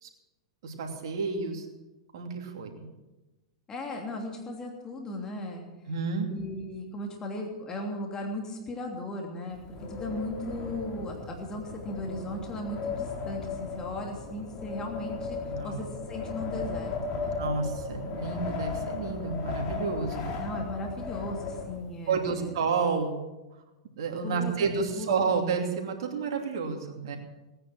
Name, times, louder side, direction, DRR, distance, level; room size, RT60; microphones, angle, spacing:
voice 1, 0.6-1.7 2.1-2.8 5.9-6.3 15.5-15.9 17.4-20.2 22.1-23.2 24.0-27.2, right 5 dB, 65° right, 2 dB, 2.8 m, -30 dB
voice 2, 3.7-5.7 6.3-15.4 15.6-17.3 20.4-22.6 24.2-24.6 24.9-25.1, left 1 dB, 25° left, 1 dB, 2.9 m, -37 dB
Wind, 9.5-22.2, left 4 dB, 40° left, 3.0 m, -36 dB
18.0 x 10.0 x 6.3 m, 1.1 s
hypercardioid pair, 110°, 3 cm